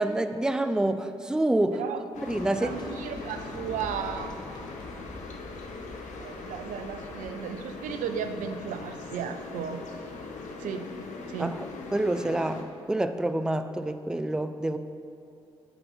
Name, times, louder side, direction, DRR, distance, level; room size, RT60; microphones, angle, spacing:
voice 1, 0.0-1.8 2.2-2.8 11.4-11.6 11.9-14.8, right 1 dB, 5° right, 10 dB, 0.5 m, -27 dB
voice 2, 1.7-2.0 2.6-4.7 6.2-9.8 10.6-10.9 11.3-11.6, right 7 dB, 65° right, 8 dB, 0.6 m, -35 dB
sound 1, 2.1-12.6, left 3 dB, 60° left, 1.0 m, -41 dB
sound 2, 2.2-10.3, left 2 dB, 30° left, 1.1 m, -47 dB
11.0 x 4.9 x 5.5 m, 2.7 s
hypercardioid pair, 45°, 14 cm